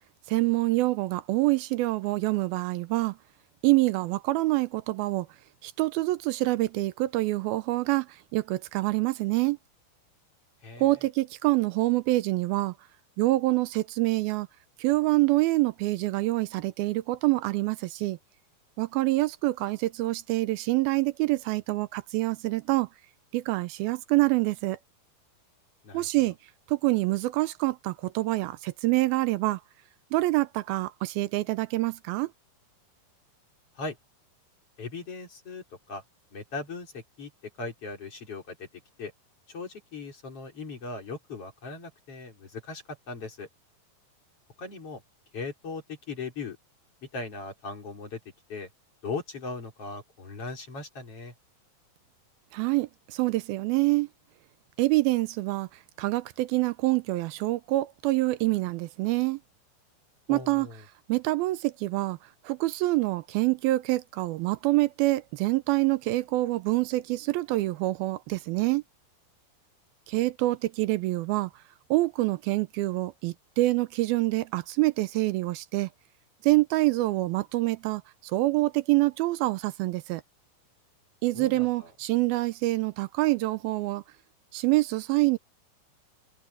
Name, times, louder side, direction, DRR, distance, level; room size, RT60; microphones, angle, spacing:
voice 1, 0.3-3.2 3.6-5.3 5.6-9.6 10.8-12.7 13.2-14.5 14.8-18.2 18.8-22.9 23.3-24.8 25.9-26.4 26.7-29.6 30.1-32.3 52.5-54.1 54.8-55.7 56.0-59.4 60.3-60.7 61.1-62.2 62.4-68.8 70.1-71.5 71.9-75.9 76.4-80.2 81.2-84.0 84.5-85.4, right 19 dB, 85° right, 2.5 m, -26 dB
voice 2, 34.8-36.0 36.3-37.3 37.6-38.7 39.0-39.1 39.5-43.5 44.6-45.0 45.3-46.6 47.0-48.2 48.5-48.7 49.0-51.3 60.3-60.8 81.3-81.9, left 3 dB, 40° left, 4.8 m, -38 dB
omnidirectional pair, 4.4 m